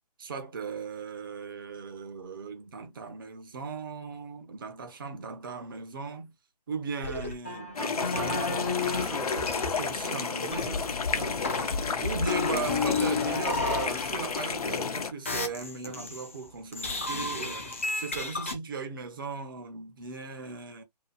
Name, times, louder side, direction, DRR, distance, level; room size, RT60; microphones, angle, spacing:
voice 1, 0.2-6.3 6.7-20.8, right 5 dB, 30° right, 0.7 m, -38 dB
sound 1, 7.0-9.1 9.4-10.1 10.4-14.9 15.3-16.4 16.7-18.5, left 4 dB, 20° left, 0.4 m, -32 dB
sound 2, 7.8-15.1, left 5 dB, 60° left, 0.6 m, -32 dB
2.8 x 2.5 x 2.3 m
figure-of-eight pair, 150°, 21 cm